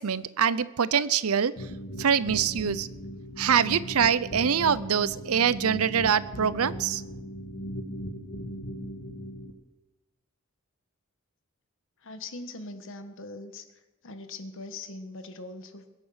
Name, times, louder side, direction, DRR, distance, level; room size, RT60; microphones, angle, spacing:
voice 1, 0.0-1.7 2.0-2.9 3.4-7.0, right 7 dB, 90° right, 18 dB, 0.6 m, -24 dB
sound 1, 1.6-9.5, equal, 80° left, 1.5 m, -38 dB
voice 2, 12.0-13.7 14.0-15.9, left 2 dB, 65° left, 9 dB, 1.4 m, -41 dB
21.5 x 8.3 x 6.4 m, 1.1 s
head